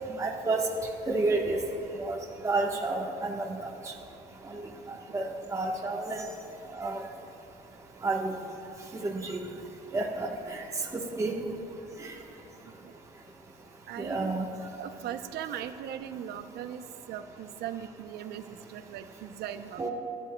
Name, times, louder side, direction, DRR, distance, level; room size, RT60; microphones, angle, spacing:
voice 1, 0.2-0.6 1.1-1.6 2.0-2.2 2.4-3.7 4.5-4.6 5.1-6.2 6.7-7.0 8.0-8.4 8.9-9.5 9.9-10.6 10.9-11.4 12.0-12.1 14.0-14.5 19.8-19.9, right 3 dB, 20° right, -2 dB, 1.2 m, -30 dB
voice 2, 13.9-14.4 14.8-19.9, right 10 dB, 75° right, 9 dB, 0.7 m, -39 dB
21.0 x 13.0 x 2.3 m, 3.0 s
cardioid pair, 110°, 17 cm